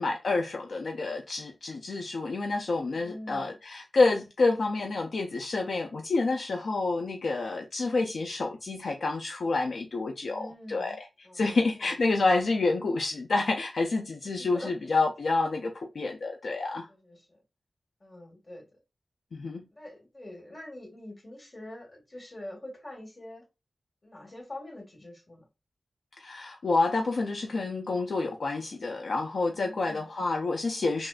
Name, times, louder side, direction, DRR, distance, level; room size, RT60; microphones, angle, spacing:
voice 1, 0.0-16.9 19.3-19.6 26.2-31.1, left 3 dB, 80° left, 0.3 m, -28 dB
voice 2, 2.9-3.6 10.2-11.0 11.2-11.9 14.2-14.7 16.9-17.4 18.0-18.6 19.7-23.4 24.0-25.4 29.5-30.0, left 1 dB, 45° left, 1.7 m, -45 dB
3.5 x 2.4 x 2.3 m
cardioid pair, 45°, 0 cm